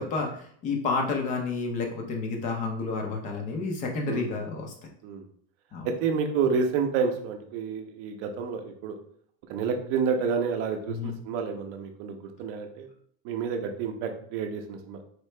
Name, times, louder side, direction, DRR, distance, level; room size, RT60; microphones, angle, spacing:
voice 1, 0.0-4.7 5.7-5.9 10.9-11.2, left 4 dB, 20° left, 3 dB, 0.4 m, -30 dB
voice 2, 5.8-9.0 9.5-12.9 13.2-15.0, right 5 dB, 40° right, 5 dB, 0.6 m, -29 dB
4.3 x 2.8 x 3.2 m, 0.62 s
supercardioid pair, 175°, 37 cm